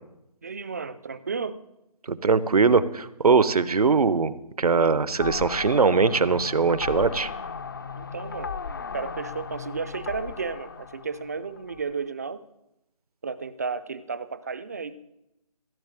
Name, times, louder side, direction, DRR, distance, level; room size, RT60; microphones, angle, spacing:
voice 1, 0.4-1.6 7.9-8.5 8.9-12.4 13.2-15.0, right 5 dB, 25° right, 14 dB, 0.5 m, -33 dB
voice 2, 2.1-4.3 4.6-7.3, right 4 dB, 70° right, 16 dB, 0.9 m, -21 dB
sound 1, 5.2-11.9, left 5 dB, 35° left, 0.5 m, -36 dB
15.5 x 7.4 x 8.9 m, 0.88 s
figure-of-eight pair, 160°, 20 cm